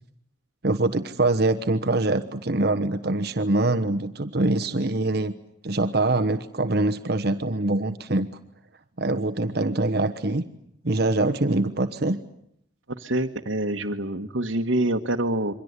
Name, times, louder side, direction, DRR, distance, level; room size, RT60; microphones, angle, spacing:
voice 1, 0.6-5.3 5.6-8.3 9.0-10.4 10.8-12.2, right 2 dB, 55° right, 8 dB, 1.2 m, -24 dB
voice 2, 13.0-15.5, right 1 dB, 80° right, 1 dB, 1.4 m, -26 dB
28.0 x 24.0 x 8.2 m, 0.72 s
head